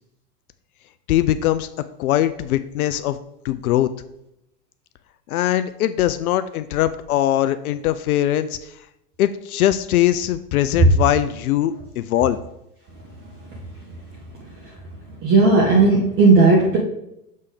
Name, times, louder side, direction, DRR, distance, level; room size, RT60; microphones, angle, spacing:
voice 1, 1.1-1.7 2.0-3.2 3.4-3.9 5.3-8.7 9.2-12.4, left 12 dB, 65° left, 12 dB, 0.6 m, -21 dB
voice 2, 15.2-16.8, right 3 dB, 25° right, -3 dB, 1.2 m, -14 dB
6.7 x 3.4 x 5.2 m, 0.82 s
hypercardioid pair, 105°, 46 cm